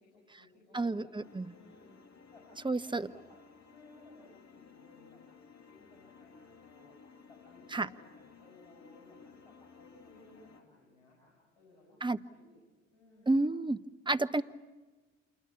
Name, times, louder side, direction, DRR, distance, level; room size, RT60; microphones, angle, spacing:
voice 1, 0.0-1.1 1.4-2.5 2.7-3.3 3.6-5.2 5.7-7.0 7.3-12.0 12.3-12.6 12.9-13.5, left 2 dB, 80° left, -2 dB, 5.9 m, -60 dB
voice 2, 0.7-1.5 2.6-3.1 7.7-7.9 12.0-12.2 13.3-13.8 14.1-14.4, right 2 dB, 15° right, 11 dB, 0.9 m, -30 dB
sound 1, 1.2-10.6, left 5 dB, 45° left, 2.9 m, -57 dB
27.5 x 21.5 x 8.5 m, 1.3 s
figure-of-eight pair, 45°, 37 cm